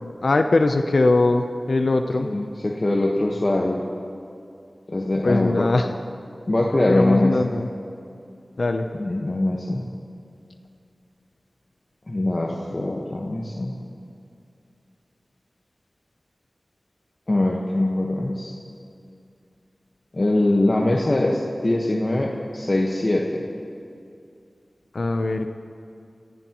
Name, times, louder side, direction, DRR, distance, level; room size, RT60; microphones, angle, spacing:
voice 1, 0.0-2.3 5.2-5.9 6.9-7.7 8.6-8.9 24.9-25.5, left 2 dB, 75° left, 6 dB, 0.7 m, -21 dB
voice 2, 2.2-3.8 4.9-5.7 6.5-7.5 8.9-9.9 12.1-13.8 17.3-18.5 20.1-23.5, left 1 dB, 45° left, -2 dB, 1.3 m, -22 dB
28.5 x 15.5 x 3.1 m, 2.5 s
wide cardioid pair, 60°, 0 cm